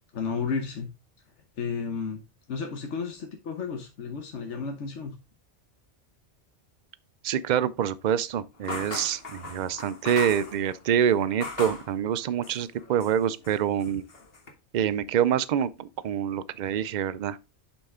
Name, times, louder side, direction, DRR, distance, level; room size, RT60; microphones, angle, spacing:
voice 1, 0.1-0.9 1.6-2.2 2.5-5.2, left 5 dB, 85° left, 1.3 m, -32 dB
voice 2, 7.2-14.0 14.7-17.4, right 9 dB, 55° right, 0.5 m, -26 dB
sound 1, 8.6-11.9 12.4-13.2 13.4-14.5, left 3 dB, 60° left, 1.6 m, -38 dB
7.1 x 5.6 x 3.6 m
omnidirectional pair, 1.2 m